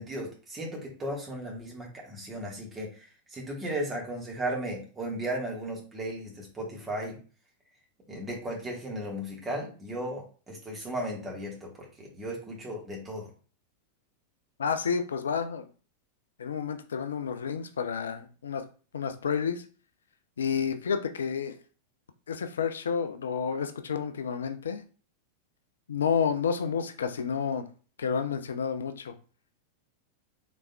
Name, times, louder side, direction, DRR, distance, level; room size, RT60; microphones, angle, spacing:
voice 1, 0.0-7.2 8.1-13.3, right 1 dB, 20° right, -1 dB, 1.4 m, -36 dB
voice 2, 14.6-15.7 16.4-18.6 18.9-19.6 20.4-21.5 22.3-24.8 25.9-27.7 28.0-29.1, left 6 dB, 65° left, 8 dB, 0.3 m, -30 dB
4.0 x 3.4 x 2.2 m, 0.38 s
figure-of-eight pair, 90°, 0 cm